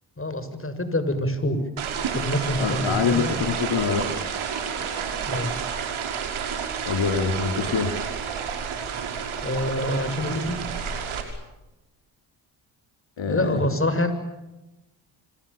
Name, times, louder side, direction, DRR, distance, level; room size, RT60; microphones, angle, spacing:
voice 1, 0.2-1.6 2.1-3.3 5.2-5.5 9.4-10.6 13.3-14.1, left 1 dB, 25° left, 10 dB, 7.4 m, -26 dB
sound 1, 1.8-11.2, right 7 dB, 75° right, 5.9 m, -30 dB
voice 2, 2.6-4.1 6.9-7.9 13.2-13.6, left 5 dB, 65° left, 5 dB, 3.7 m, -25 dB
30.0 x 27.0 x 7.2 m, 0.97 s
supercardioid pair, 50°, 49 cm